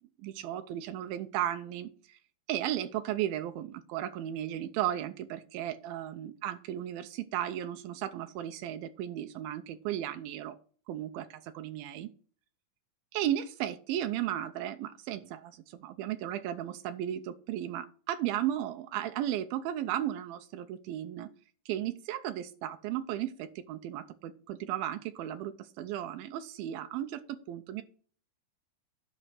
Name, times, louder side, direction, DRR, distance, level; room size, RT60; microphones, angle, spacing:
voice 1, 0.2-2.2 2.5-10.6 10.9-12.1 13.1-21.3 21.7-27.8, right 12 dB, 85° right, 8 dB, 2.5 m, -35 dB
11.0 x 5.4 x 6.2 m, 0.43 s
omnidirectional pair, 4.2 m